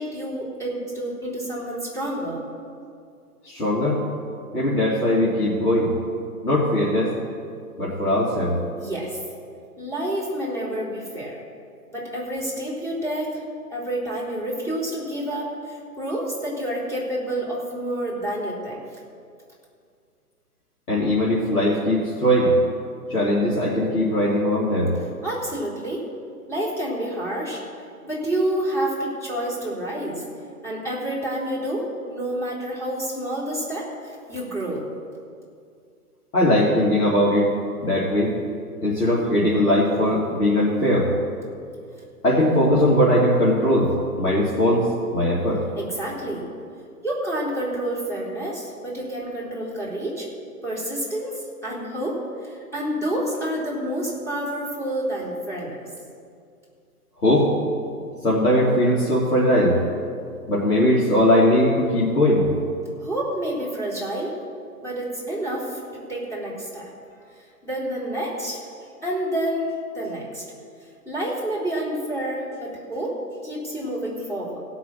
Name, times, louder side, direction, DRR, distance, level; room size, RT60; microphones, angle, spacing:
voice 1, 0.0-2.4 8.8-9.2 9.8-11.4 11.9-13.4 13.7-18.8 25.2-26.0 26.5-27.6 28.0-30.2 30.6-34.9 45.7-46.4 47.0-50.3 50.6-55.8 63.0-64.4 64.8-65.8 66.1-66.9 67.6-68.7 69.0-70.4 71.0-73.2 73.4-74.6, right 1 dB, 5° left, -6 dB, 3.3 m, -29 dB
voice 2, 3.4-4.0 4.5-5.9 6.4-7.1 7.8-8.6 20.9-22.5 23.1-24.9 36.3-37.5 37.8-38.3 38.8-41.1 42.2-43.9 44.2-44.9 45.1-45.6 57.2-57.5 58.2-59.8 60.5-62.5, left 1 dB, 70° left, -7 dB, 3.0 m, -20 dB
16.5 x 6.1 x 7.4 m, 2.3 s
figure-of-eight pair, 120°, 46 cm